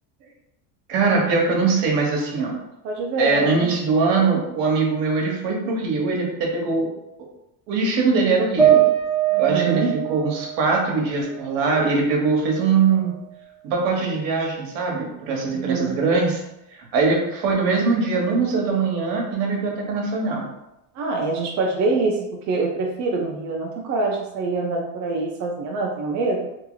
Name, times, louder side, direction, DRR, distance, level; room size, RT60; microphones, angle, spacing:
voice 1, 0.9-2.6 3.2-6.9 7.7-8.8 9.4-9.8 10.1-13.1 13.6-16.4 16.9-20.5, right 4 dB, 80° right, 0 dB, 1.2 m, -21 dB
voice 2, 2.8-3.7 9.3-9.9 15.5-16.0 20.9-26.5, right 3 dB, 40° right, -1 dB, 0.5 m, -25 dB
sound 1, 8.6-12.0 12.4-13.4, right 10 dB, ahead, 0.8 m, -23 dB
2.9 x 2.8 x 3.8 m, 0.88 s
supercardioid pair, 130°, 49 cm